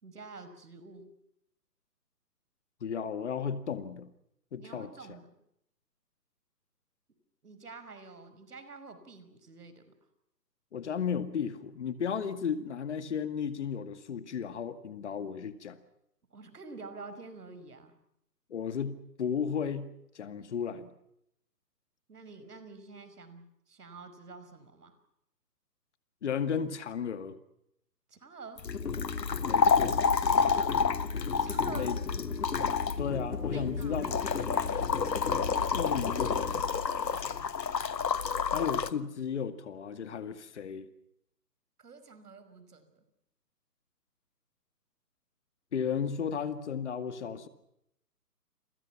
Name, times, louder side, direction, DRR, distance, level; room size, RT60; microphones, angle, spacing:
voice 1, 0.0-1.1 4.6-5.3 7.4-9.9 16.3-17.9 22.1-25.0 28.1-28.6 30.3-30.8 31.4-31.9 33.5-35.0 36.9-37.5 41.8-43.0, right 3 dB, 65° right, 10 dB, 5.6 m, -48 dB
voice 2, 2.8-4.1 4.5-4.9 10.7-15.8 18.5-19.9 20.1-20.9 26.2-27.4 29.4-30.0 31.7-32.0 33.0-34.1 35.7-36.6 38.5-40.9 45.7-47.5, left 7 dB, 45° left, 11 dB, 2.1 m, -34 dB
sound 1, 28.6-38.9, left 6 dB, 85° left, 1.4 m, -29 dB
sound 2, 28.6-38.7, left 4 dB, 65° left, 4.1 m, -36 dB
29.5 x 23.0 x 6.0 m, 0.77 s
hypercardioid pair, 160°, 49 cm